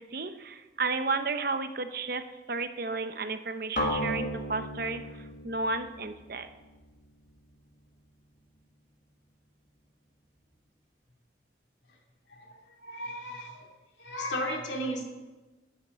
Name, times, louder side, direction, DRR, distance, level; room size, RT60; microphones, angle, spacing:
voice 1, 0.0-6.5, right 3 dB, 50° right, 9 dB, 0.7 m, -33 dB
sound 1, 3.8-7.7, equal, 45° left, 1.7 m, -35 dB
voice 2, 12.3-13.7 14.0-15.0, equal, 75° left, 0 dB, 2.5 m, -35 dB
12.0 x 6.7 x 8.1 m, 1.2 s
head